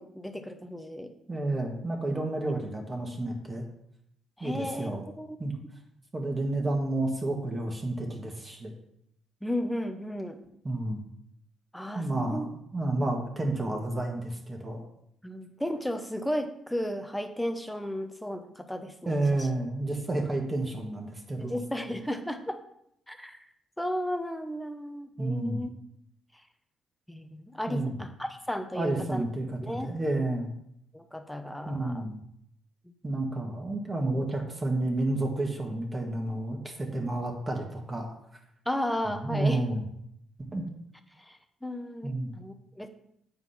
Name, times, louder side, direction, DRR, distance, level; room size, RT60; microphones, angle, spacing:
voice 1, 0.0-1.1 4.4-4.9 5.2-5.4 9.4-10.4 11.7-12.5 15.2-19.2 21.4-22.6 23.1-23.4 23.8-25.7 27.1-29.2 29.6-29.9 30.9-32.1 38.7-39.6 41.2-42.9, left 1 dB, 5° left, 7 dB, 0.9 m, -34 dB
voice 2, 1.3-3.6 4.4-5.0 5.4-5.5 6.1-8.7 10.6-11.0 11.9-14.8 19.0-21.6 25.2-25.6 27.7-28.0 28.7-30.5 31.6-32.2 33.0-38.1 39.0-39.8 40.5-40.6 42.0-42.3, right 2 dB, 25° right, 1 dB, 1.7 m, -30 dB
7.8 x 4.8 x 5.7 m, 0.75 s
cardioid pair, 90°, 0 cm